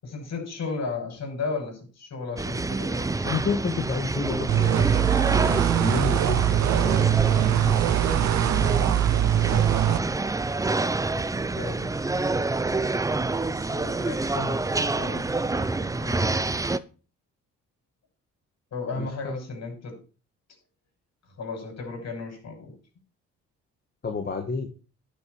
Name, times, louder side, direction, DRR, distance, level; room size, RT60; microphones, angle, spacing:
voice 1, 0.0-3.4 11.6-12.0 13.5-16.4 18.7-20.0 21.4-22.7, left 4 dB, 60° left, 2 dB, 6.9 m, -35 dB
sound 1, 2.4-16.8, right 3 dB, 10° right, 0.5 m, -27 dB
voice 2, 3.2-5.1 5.8-7.1 19.0-19.3 24.0-24.7, left 4 dB, 35° left, 4 dB, 1.7 m, -30 dB
sound 2, 4.5-10.0, right 12 dB, 65° right, 0.6 m, -23 dB
11.5 x 7.2 x 4.7 m, 0.36 s
cardioid pair, 90°, 30 cm